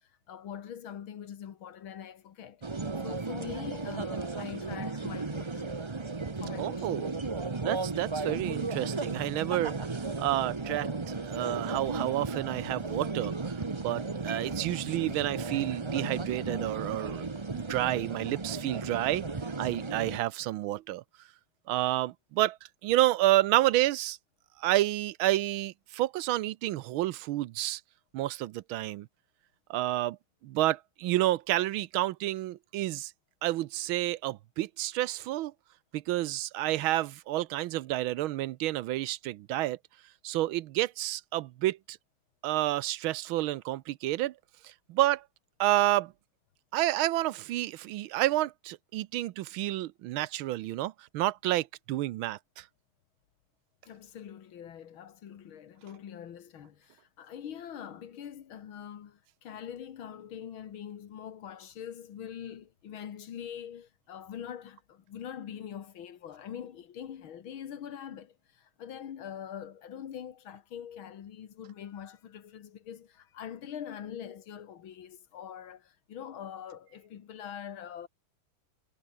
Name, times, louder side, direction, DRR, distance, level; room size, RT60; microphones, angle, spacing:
voice 1, 0.0-2.6 3.0-5.7 6.4-7.0 53.9-78.1, left 9 dB, 80° left, 2.3 m, -43 dB
sound 1, 2.6-20.2, right 3 dB, 30° right, 0.5 m, -35 dB
voice 2, 6.6-7.1 7.6-9.8 10.2-17.3 17.5-19.2 19.6-21.0 21.7-22.6 22.8-24.2 24.6-27.8 28.1-29.1 29.7-30.2 30.4-33.1 33.4-35.5 35.9-39.8 40.2-42.0 42.4-44.3 44.6-45.2 45.6-46.1 46.7-52.6, right 15 dB, 80° right, 1.5 m, -29 dB
omnidirectional pair, 2.2 m